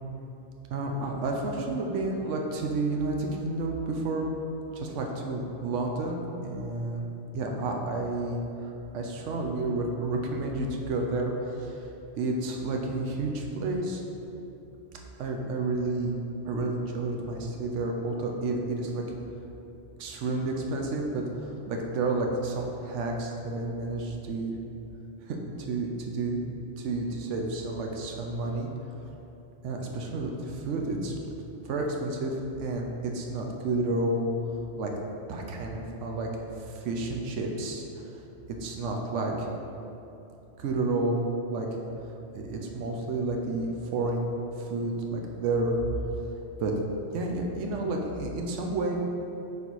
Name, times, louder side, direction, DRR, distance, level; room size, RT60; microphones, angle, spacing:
voice 1, 0.7-4.3 4.7-7.1 7.3-11.9 12.2-14.0 15.2-16.1 16.4-19.0 20.0-24.5 25.2-25.4 25.7-26.4 26.8-28.7 29.6-31.1 31.6-34.3 34.8-34.9 35.3-36.3 36.7-37.8 38.6-39.5 40.6-41.7 42.3-44.3 44.6-45.8 46.6-46.7 47.1-49.0, right 2 dB, 85° right, 1 dB, 1.0 m, -30 dB
5.3 x 4.0 x 4.5 m, 2.9 s
omnidirectional pair, 1.2 m